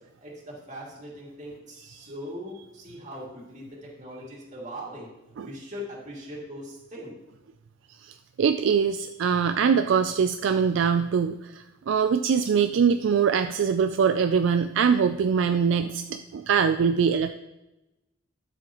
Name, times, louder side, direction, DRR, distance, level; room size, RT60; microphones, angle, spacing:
voice 1, 0.2-5.1 5.4-7.2, equal, 35° right, -4 dB, 2.5 m, -40 dB
voice 2, 8.0-17.3, right 6 dB, 65° right, 9 dB, 0.3 m, -23 dB
12.5 x 7.1 x 3.0 m, 0.97 s
head